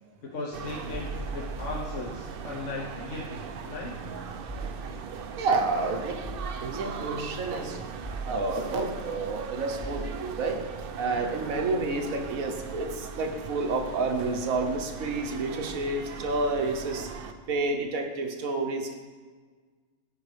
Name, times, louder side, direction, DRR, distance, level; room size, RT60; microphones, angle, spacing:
voice 1, 0.3-3.4 3.6-3.9, left 2 dB, 65° left, -2 dB, 1.3 m, -36 dB
sound 1, 0.5-17.3, right 6 dB, 60° right, 0.6 m, -40 dB
sound 2, 0.9-2.6 2.9-11.6, right 3 dB, 15° left, 0.9 m, -41 dB
voice 2, 5.4-6.2 6.6-7.8 8.2-10.6 10.9-17.1 17.5-18.9, right 3 dB, 85° right, 3 dB, 1.3 m, -29 dB
14.5 x 5.4 x 3.3 m, 1.5 s
omnidirectional pair, 1.4 m